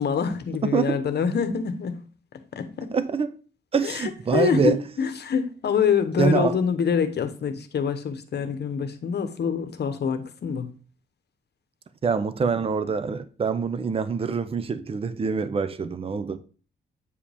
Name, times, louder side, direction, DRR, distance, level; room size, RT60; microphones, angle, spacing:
voice 1, 0.0-2.0 2.5-2.9 3.8-10.7, left 7 dB, 60° left, 1.0 m, -26 dB
voice 2, 0.6-1.0 2.9-3.3 3.7-4.8 6.2-6.5 12.0-16.4, right 5 dB, 30° right, 0.6 m, -25 dB
8.4 x 4.8 x 3.4 m
cardioid pair, 115°, 20 cm